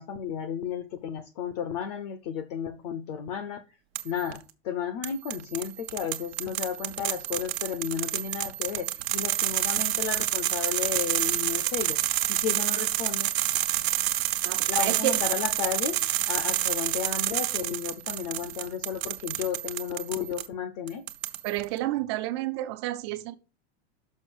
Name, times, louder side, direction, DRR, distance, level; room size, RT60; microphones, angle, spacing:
voice 1, 0.0-3.6 4.0-4.4 4.6-8.9 9.1-12.0 12.3-13.3 14.7-16.0 16.3-21.0, left 8 dB, 40° left, 0.6 m, -33 dB
sound 1, 4.0-4.4 5.0-20.5 20.9-21.6, right 14 dB, 70° right, 1.0 m, -29 dB
voice 2, 14.4-15.2 21.4-23.3, right 15 dB, 25° right, 0.4 m, -30 dB
6.4 x 5.7 x 6.1 m
supercardioid pair, 175°, 32 cm